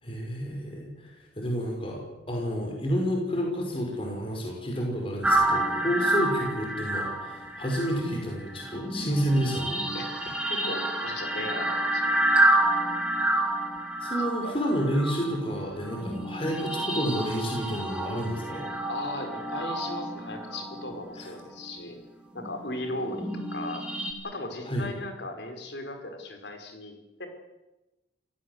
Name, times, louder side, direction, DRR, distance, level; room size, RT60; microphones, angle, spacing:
voice 1, 0.0-1.1 1.4-9.8 14.0-18.6 24.7-24.9, equal, 30° left, 0 dB, 5.6 m, -30 dB
sound 1, 5.2-21.7 22.3-24.1, right 1 dB, 5° right, 3.9 m, -29 dB
voice 2, 10.4-12.2 14.4-14.5 18.9-22.0 22.3-23.8 24.2-26.9 27.2-27.3, left 2 dB, 70° left, 5 dB, 5.0 m, -37 dB
28.0 x 17.0 x 8.1 m, 1.0 s
head